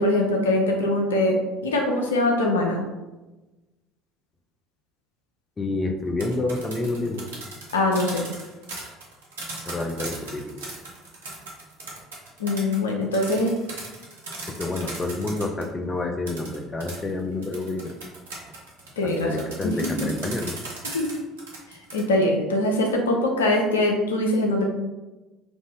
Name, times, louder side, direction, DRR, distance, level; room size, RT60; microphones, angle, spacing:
voice 1, 0.0-2.8 7.7-8.2 12.4-13.5 19.0-19.3 19.6-20.1 20.8-21.1 21.9-24.6, left 1 dB, 75° left, 1 dB, 0.5 m, -22 dB
voice 2, 5.6-7.3 9.7-10.6 14.5-17.9 19.0-20.5, left 2 dB, 25° left, 4 dB, 0.5 m, -28 dB
sound 1, 6.0-15.7 16.3-22.0, right 2 dB, 75° right, 0.8 m, -38 dB
4.0 x 2.5 x 3.6 m, 1.1 s
figure-of-eight pair, 60°, 0 cm